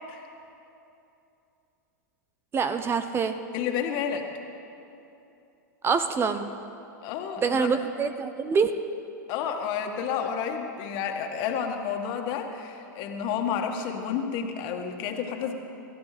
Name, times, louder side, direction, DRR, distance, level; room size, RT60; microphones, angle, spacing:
voice 1, 2.5-3.4 5.8-6.7 7.4-8.8, right 5 dB, 25° right, 10 dB, 0.7 m, -26 dB
voice 2, 3.5-4.3 7.0-7.8 9.3-15.5, left 7 dB, 45° left, 3 dB, 1.9 m, -30 dB
28.5 x 15.0 x 3.4 m, 2.8 s
hypercardioid pair, 100°, 10 cm